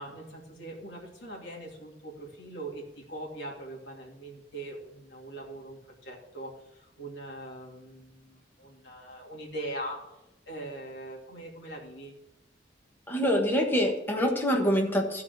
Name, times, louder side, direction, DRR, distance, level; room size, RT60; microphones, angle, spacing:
voice 1, 0.0-10.1 10.5-12.2, right 1 dB, 70° left, -1 dB, 2.7 m, -41 dB
voice 2, 13.1-15.2, equal, 10° left, 1 dB, 1.4 m, -25 dB
14.5 x 4.8 x 6.6 m, 0.89 s
head